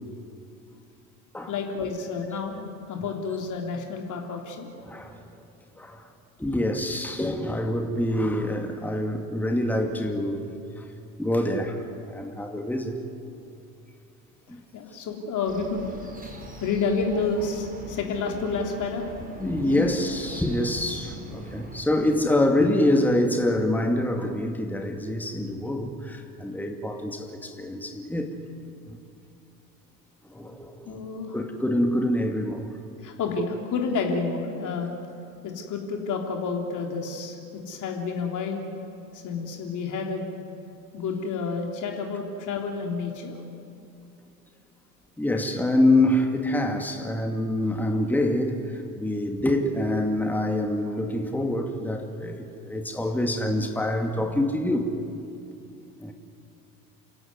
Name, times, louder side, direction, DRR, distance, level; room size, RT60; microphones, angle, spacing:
voice 1, 1.5-2.6 2.9-4.7 14.7-16.0 16.6-19.1 19.7-19.9 30.9-31.4 33.0-34.9 35.4-38.6 39.1-40.3 40.9-43.4, left 4 dB, 40° left, 2 dB, 3.4 m, -29 dB
voice 2, 4.8-5.2 5.8-6.1 6.4-10.5 10.8-10.9 11.2-13.0 14.5-14.6 19.4-28.4 28.9-29.0 30.3-31.0 31.3-32.7 45.2-54.9 56.0-56.1, left 1 dB, 5° left, 4 dB, 2.3 m, -26 dB
sound 1, 15.5-21.8, right 1 dB, 20° right, 5.2 m, -42 dB
28.5 x 17.0 x 9.6 m, 2.6 s
figure-of-eight pair, 70°, 47 cm